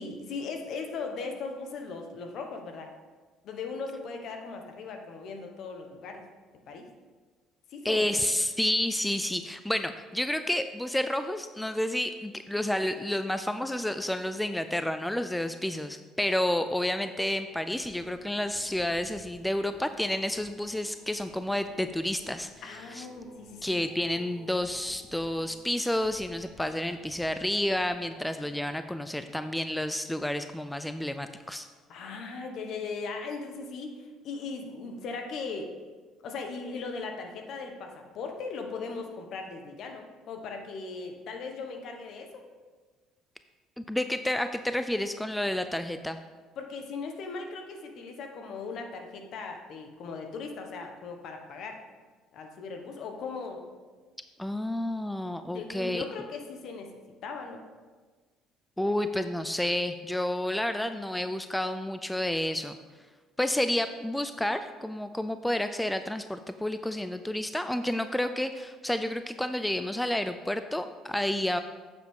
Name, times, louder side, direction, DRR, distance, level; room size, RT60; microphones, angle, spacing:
voice 1, 0.0-2.9 3.4-6.2 6.7-6.9 7.7-8.0 22.6-23.8 31.9-35.7 36.2-42.4 46.6-51.8 52.3-53.6 55.5-57.6, left 4 dB, 60° left, 4 dB, 1.2 m, -38 dB
voice 2, 7.8-23.1 23.6-31.7 43.8-46.2 54.4-56.0 58.8-62.8 63.4-71.6, left 1 dB, 5° left, 9 dB, 0.4 m, -30 dB
sound 1, 17.4-30.7 31.2-31.6 31.8-31.9, left 3 dB, 35° left, 1.2 m, -55 dB
8.8 x 7.3 x 3.8 m, 1.4 s
cardioid pair, 105°, 0 cm